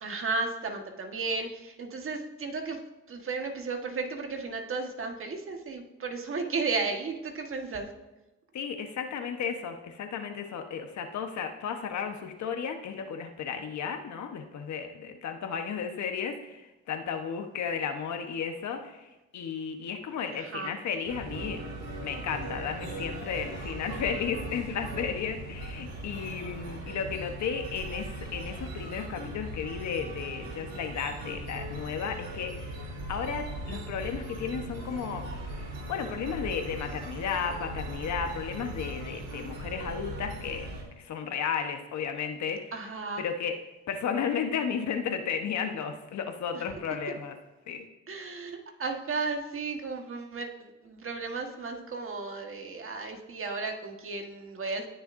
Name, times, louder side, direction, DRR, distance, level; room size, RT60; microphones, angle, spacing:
voice 1, 0.0-2.8 3.1-7.9 20.3-20.7 42.7-43.3 46.5-46.6 48.1-54.9, right 4 dB, 45° right, 3 dB, 1.5 m, -34 dB
voice 2, 8.5-21.6 22.0-32.8 33.1-35.2 35.5-40.7 41.0-42.7 43.2-43.5 43.9-47.3 47.7-47.8, left 7 dB, 65° left, 5 dB, 1.2 m, -34 dB
sound 1, 21.0-40.8, right 1 dB, 90° right, 3.8 m, -39 dB
17.0 x 6.8 x 2.6 m, 1.0 s
cardioid pair, 90°, 30 cm